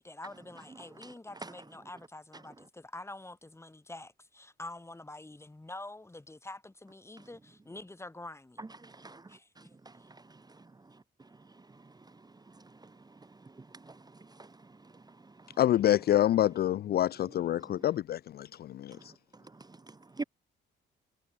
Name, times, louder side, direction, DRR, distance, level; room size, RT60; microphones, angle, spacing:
voice 1, 0.0-8.6 9.3-9.5, left 2 dB, 15° left, 4.0 m, -46 dB
voice 2, 8.8-9.3 9.6-9.9 12.8-12.9 13.6-14.0 14.3-14.5 17.7-17.8 19.6-20.2, right 3 dB, 20° right, 1.5 m, -44 dB
voice 3, 15.6-18.5 18.8-18.9, left 12 dB, 55° left, 0.4 m, -26 dB
cardioid pair, 90°, 20 cm